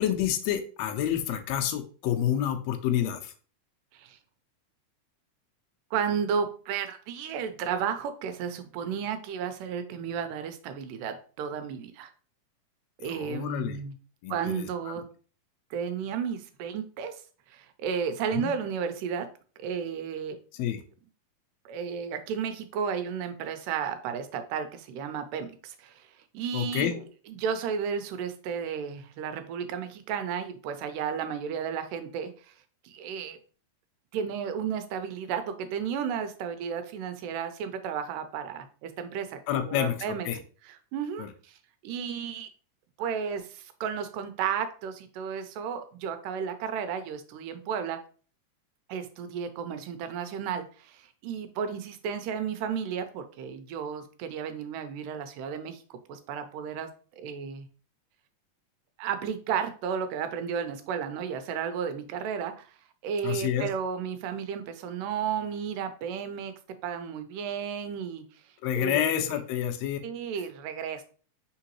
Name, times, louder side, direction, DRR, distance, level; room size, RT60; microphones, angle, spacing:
voice 1, 0.0-3.3 13.0-13.8 14.2-14.9 18.3-18.5 20.5-20.8 26.5-27.0 39.5-40.4 41.2-41.3 63.2-63.7 68.6-70.0, left 10 dB, 85° left, 5 dB, 1.6 m, -29 dB
voice 2, 5.9-12.1 13.0-13.9 14.3-15.0 15.7-17.1 17.5-19.3 19.6-20.4 21.7-26.1 26.3-26.9 27.3-32.5 32.8-33.4 34.1-40.3 40.7-41.6 41.8-42.5 43.0-48.0 48.9-56.9 57.2-57.7 59.0-62.8 63.0-66.5 66.8-68.2 68.7-69.4 70.0-71.0, right 7 dB, 90° right, 9 dB, 2.2 m, -33 dB
4.5 x 3.8 x 2.9 m, 0.39 s
omnidirectional pair, 3.7 m